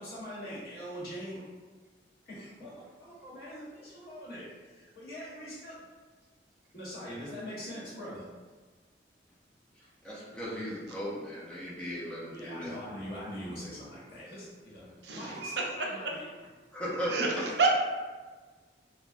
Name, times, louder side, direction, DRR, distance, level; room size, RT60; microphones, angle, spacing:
voice 1, 0.0-1.4 2.3-2.7 3.0-5.8 6.7-8.2 12.3-14.9 15.1-16.2, equal, 55° left, -8 dB, 1.1 m, -42 dB
voice 2, 10.0-12.7 16.7-17.1, equal, 5° left, -7 dB, 0.5 m, -37 dB
voice 3, 15.0-15.9 17.1-17.7, right 4 dB, 70° right, -1 dB, 0.5 m, -29 dB
3.3 x 2.1 x 2.4 m, 1.4 s
head